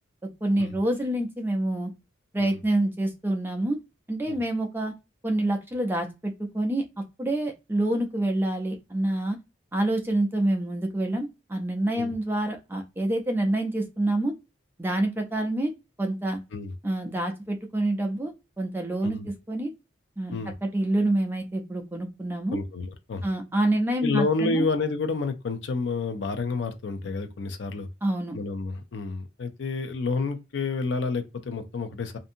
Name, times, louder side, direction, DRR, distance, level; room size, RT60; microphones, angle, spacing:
voice 1, 0.4-1.9 2.3-3.8 4.1-4.9 5.2-6.8 7.2-9.4 9.7-14.3 14.8-15.7 16.0-16.4 16.8-19.2 19.5-19.7 20.2-22.6 23.2-24.6 28.0-28.4, right 1 dB, 10° right, 0.4 m, -27 dB
voice 2, 22.5-23.3 24.0-27.9 28.3-32.2, left 3 dB, 65° left, 0.4 m, -29 dB
2.6 x 2.6 x 2.6 m
head